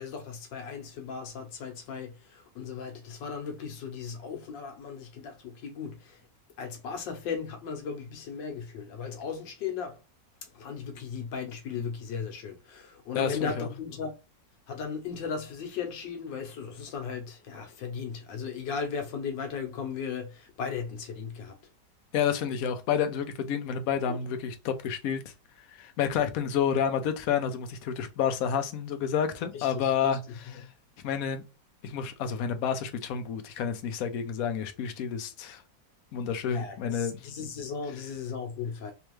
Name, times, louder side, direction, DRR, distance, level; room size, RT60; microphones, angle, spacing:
voice 1, 0.0-6.2 6.6-10.0 10.4-14.1 14.7-21.6 24.1-24.2 29.5-30.2 36.4-38.9, left 6 dB, 85° left, 1.6 m, -36 dB
voice 2, 13.1-13.7 22.1-25.2 25.8-30.2 31.0-31.4 31.8-35.6 36.1-37.2, left 7 dB, 65° left, 0.9 m, -29 dB
3.4 x 3.1 x 3.1 m
omnidirectional pair, 1.9 m